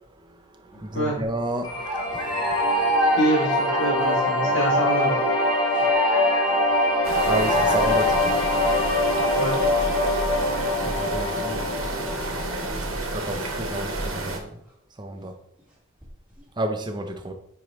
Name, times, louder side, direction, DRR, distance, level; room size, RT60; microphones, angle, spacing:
voice 1, 0.2-2.3 7.3-8.4 10.8-11.6 13.1-14.6 15.0-15.4 16.6-17.3, right 1 dB, 20° right, 0.6 m, -31 dB
sound 1, 0.7-0.8 1.0-1.2 1.7-4.2 4.5-4.6 5.7-12.0 12.4-12.5 13.2-13.4 13.8-13.9 14.2-14.3 16.0-16.3, equal, 5° right, 1.9 m, -31 dB
sound 2, 1.6-12.7, left 1 dB, 20° left, 1.7 m, -23 dB
voice 2, 3.2-5.1 9.4-9.5, right 1 dB, 60° left, 2.7 m, -25 dB
sound 3, 7.0-14.4, right 2 dB, 70° right, 1.3 m, -30 dB
8.9 x 4.8 x 3.1 m
head